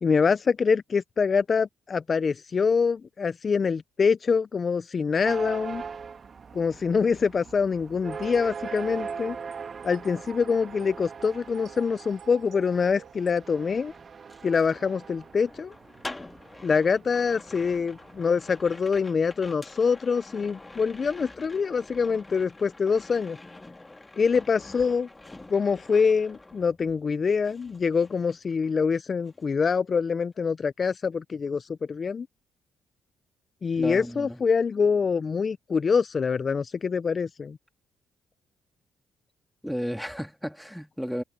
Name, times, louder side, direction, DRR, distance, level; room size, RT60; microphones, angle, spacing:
voice 1, 0.0-5.8 6.5-9.4 9.8-13.9 14.4-15.7 16.6-23.4 24.2-25.1 25.5-32.3 33.6-37.6, left 5 dB, 40° left, 0.4 m, -25 dB
sound 1, 5.2-19.1, right 5 dB, 45° right, 1.5 m, -41 dB
sound 2, 8.1-13.4, right 10 dB, 70° right, 3.2 m, -50 dB
sound 3, 13.0-27.1 27.4-28.9 29.2-29.5, left 2 dB, 15° left, 1.9 m, -47 dB
voice 2, 33.7-34.4 39.6-41.2, equal, ahead, 2.1 m, -33 dB
cardioid pair, 90°, 0 cm